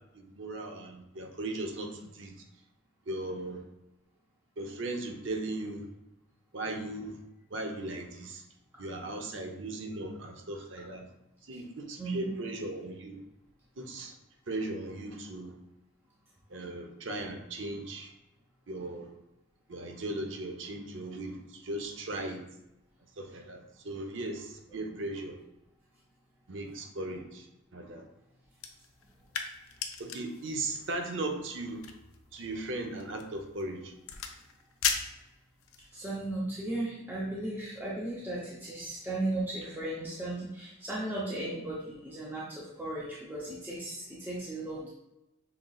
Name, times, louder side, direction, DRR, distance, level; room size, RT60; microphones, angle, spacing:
voice 1, 0.1-2.4 3.1-3.6 4.6-5.9 6.5-7.2 7.5-8.4 8.8-11.1 11.4-13.2 13.8-14.1 14.5-15.5 16.5-18.1 18.7-19.1 19.7-22.4 23.2-25.4 26.5-27.5 27.7-28.1 30.0-31.9 32.3-33.9, right 2 dB, 60° right, 4 dB, 0.7 m, -37 dB
voice 2, 12.0-12.3 35.9-44.9, right 2 dB, 10° right, -6 dB, 0.7 m, -36 dB
sound 1, 28.5-35.9, left 7 dB, 80° left, 0.5 m, -39 dB
5.7 x 3.7 x 2.4 m, 0.90 s
head